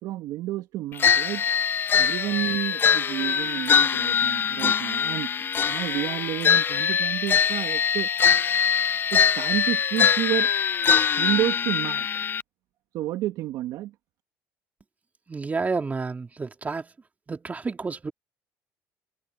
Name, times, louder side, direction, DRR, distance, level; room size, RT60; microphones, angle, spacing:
voice 1, 0.0-1.4 2.0-8.1 9.1-10.5 11.2-12.1 12.9-13.9, right 15 dB, 75° right, 2.5 m, -30 dB
sound 1, 1.0-12.4, left 7 dB, 35° left, 0.3 m, -23 dB
voice 2, 15.3-16.9 17.3-18.1, right 4 dB, 25° right, 3.7 m, -30 dB
supercardioid pair, 90°, 6 cm